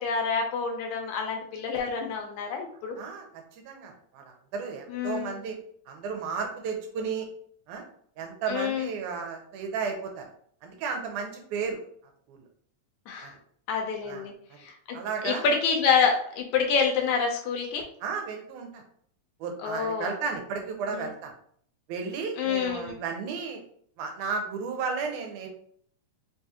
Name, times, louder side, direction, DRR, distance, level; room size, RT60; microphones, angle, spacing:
voice 1, 0.0-3.0 4.9-5.4 8.5-8.9 13.1-13.3 13.7-14.3 14.6-15.0 15.2-17.8 19.6-20.1 20.9-21.1 22.4-22.9, left 6 dB, 80° left, 2 dB, 1.8 m, -27 dB
voice 2, 3.0-3.3 3.7-5.6 5.9-7.3 7.7-7.9 8.2-10.3 10.6-11.8 12.3-12.4 13.2-13.3 14.0-14.3 14.9-15.5 18.0-18.8 19.4-21.3 21.9-23.6 24.0-25.5, right 5 dB, 85° right, 3 dB, 2.1 m, -33 dB
4.8 x 2.3 x 2.7 m, 0.62 s
omnidirectional pair, 3.5 m